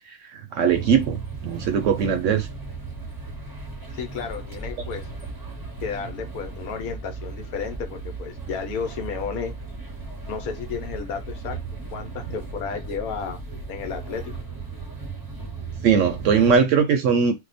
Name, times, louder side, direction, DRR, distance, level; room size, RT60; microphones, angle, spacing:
voice 1, 0.3-2.5 15.8-17.3, right 6 dB, 70° right, 0.8 m, -20 dB
sound 1, 0.7-16.6, right 3 dB, 25° right, 0.5 m, -36 dB
voice 2, 3.9-5.1 5.8-9.5 10.3-11.6 11.9-13.4 13.7-14.3, left 6 dB, 80° left, 1.2 m, -32 dB
2.8 x 2.1 x 3.9 m
omnidirectional pair, 1.5 m